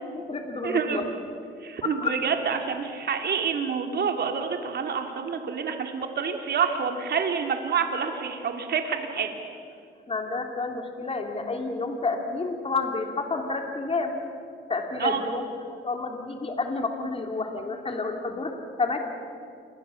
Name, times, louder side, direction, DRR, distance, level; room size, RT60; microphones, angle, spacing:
voice 1, 0.0-1.0 1.8-2.2 10.1-14.2 14.7-15.4 15.8-18.5 18.8-19.0, left 3 dB, 30° left, 3 dB, 3.1 m, -29 dB
voice 2, 0.6-1.0 1.6-9.3 15.0-15.2, right 6 dB, 55° right, 4 dB, 2.7 m, -27 dB
28.0 x 21.5 x 7.1 m, 2.4 s
cardioid pair, 90°, 20 cm